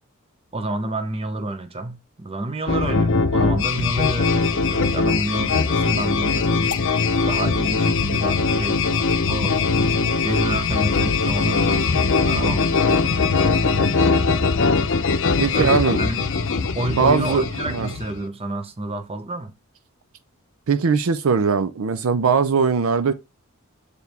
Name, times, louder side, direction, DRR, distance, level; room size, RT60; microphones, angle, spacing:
voice 1, 0.5-6.8 7.2-9.6 9.9-13.9 15.5-16.3 16.7-19.5, right 2 dB, 30° right, 0.9 m, -29 dB
sound 1, 2.7-18.2, left 4 dB, 60° left, 0.6 m, -21 dB
voice 2, 15.4-16.0 16.9-17.9 20.7-23.1, right 5 dB, 70° right, 0.5 m, -20 dB
6.8 x 4.7 x 3.4 m
head